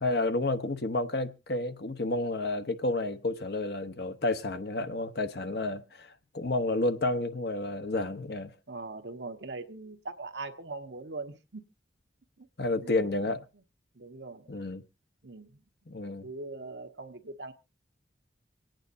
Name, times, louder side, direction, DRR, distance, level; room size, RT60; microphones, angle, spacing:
voice 1, 0.0-6.1 6.3-8.5 12.6-13.4 14.5-14.8 15.9-16.2, left 2 dB, 55° left, 0.9 m, -30 dB
voice 2, 8.7-11.7 12.4-12.5 12.8-13.0 13.9-14.5 15.2-15.6 16.2-17.5, right 3 dB, 70° right, 1.1 m, -41 dB
26.5 x 9.0 x 2.6 m
head